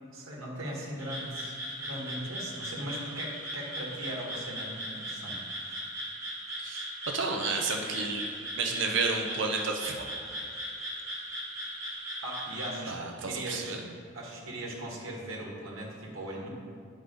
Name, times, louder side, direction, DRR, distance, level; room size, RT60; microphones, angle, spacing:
voice 1, 0.1-5.8 12.2-13.0 13.2-13.8 14.1-16.5, right 1 dB, 75° right, -3 dB, 1.7 m, -39 dB
Frog, 1.0-12.7, equal, 15° right, 1.8 m, -38 dB
voice 2, 7.1-10.0 12.9-13.8, right 4 dB, 60° right, 2 dB, 0.8 m, -31 dB
9.5 x 5.2 x 3.9 m, 2.2 s
head